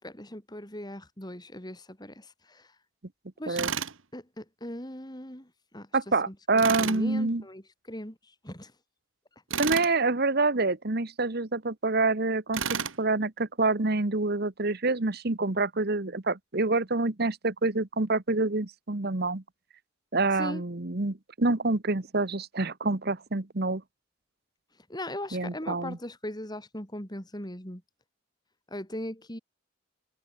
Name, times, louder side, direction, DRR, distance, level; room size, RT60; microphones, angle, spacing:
voice 1, 0.0-2.7 3.4-3.6 4.1-5.9 6.3-8.7 20.3-20.6 24.9-27.8 28.7-29.4, left 1 dB, 20° left, 4.4 m, -39 dB
Tools, 3.6-4.0 6.6-7.0 9.5-9.9 12.5-13.0, right 7 dB, 75° right, 1.9 m, -31 dB
voice 2, 5.9-7.4 9.6-12.6 13.0-19.4 20.1-23.8 25.3-26.0, right 3 dB, 50° right, 1.3 m, -27 dB
head